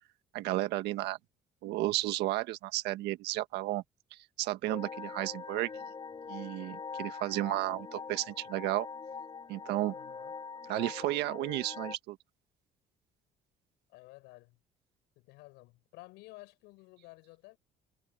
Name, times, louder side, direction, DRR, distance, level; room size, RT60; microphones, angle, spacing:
voice 1, 0.3-1.2 1.6-3.8 4.1-5.8 6.3-8.9 9.5-9.9 10.7-12.2, right 16 dB, 80° right, 1.6 m, -33 dB
sound 1, 4.7-12.0, left 5 dB, 30° left, 3.7 m, -43 dB
voice 2, 9.9-10.4 13.9-14.6 15.2-17.6, left 22 dB, 90° left, 7.8 m, -53 dB
cardioid pair, 100°, 17 cm